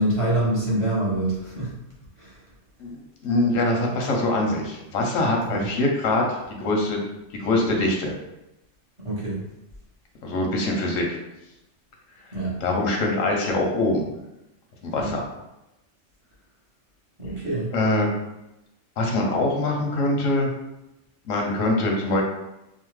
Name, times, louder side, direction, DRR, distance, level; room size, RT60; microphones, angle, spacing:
voice 1, 0.0-1.7 2.2-2.4 5.5-5.7 9.0-9.4 12.3-12.6 15.0-15.1 17.2-17.7, right 1 dB, 30° right, -8 dB, 0.7 m, -25 dB
voice 2, 2.8-7.0 7.4-8.1 10.2-11.1 12.6-14.0 14.8-15.2 17.7-18.1 19.0-20.5 21.2-22.2, left 2 dB, 90° left, 0 dB, 1.1 m, -23 dB
2.8 x 2.0 x 3.1 m, 0.91 s
omnidirectional pair, 1.3 m